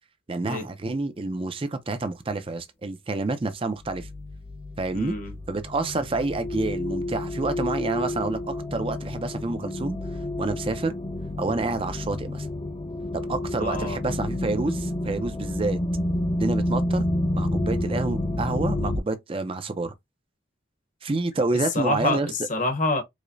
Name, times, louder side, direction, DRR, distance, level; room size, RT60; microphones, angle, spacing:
voice 1, 0.3-4.1 4.8-5.1 5.5-10.0 10.4-11.0 11.4-12.5 13.3-15.8 16.4-17.1 17.3-19.9 21.0-22.3, right 3 dB, 30° right, 0.4 m, -28 dB
sound 1, 3.8-19.0, left 1 dB, 25° left, 0.5 m, -29 dB
voice 2, 4.9-5.3 13.6-14.0 21.7-23.0, left 2 dB, 40° left, 0.9 m, -27 dB
4.8 x 2.1 x 2.6 m
head